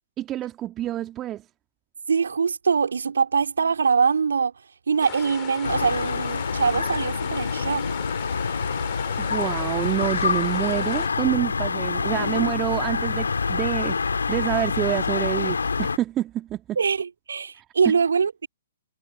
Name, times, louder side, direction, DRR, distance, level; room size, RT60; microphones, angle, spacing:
voice 1, 0.2-1.4 9.2-14.0 14.3-16.8 17.6-17.9, right 13 dB, 25° right, 2.1 m, -27 dB
voice 2, 2.1-4.5 4.9-7.9 16.8-18.5, right 5 dB, 70° right, 2.5 m, -23 dB
sound 1, 5.0-11.1, left 32 dB, 35° left, 3.2 m, -38 dB
sound 2, 5.6-16.0, left 5 dB, 75° left, 2.8 m, -26 dB
figure-of-eight pair, 120°, 0 cm